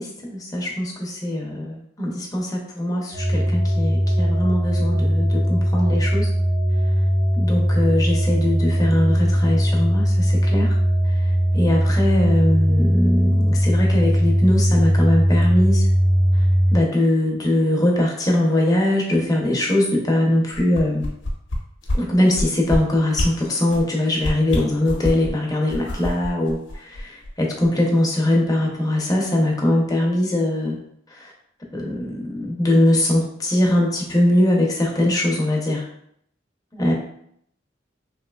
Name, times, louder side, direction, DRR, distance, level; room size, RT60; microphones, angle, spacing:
voice 1, 0.0-6.3 7.4-10.8 11.5-15.8 16.7-21.0 22.0-30.8 31.1-31.3 31.7-35.8 36.7-36.9, left 1 dB, 20° left, -1 dB, 0.6 m, -21 dB
sound 1, 3.1-16.8, equal, 55° right, 0.9 m, -19 dB
sound 2, 20.5-21.6 21.9-22.0 22.3-22.8 23.1-23.3 23.7-23.9 24.2-25.3 25.7-27.3 27.6-27.7, left 1 dB, 70° left, 0.7 m, -25 dB
3.1 x 2.8 x 2.3 m, 0.70 s
head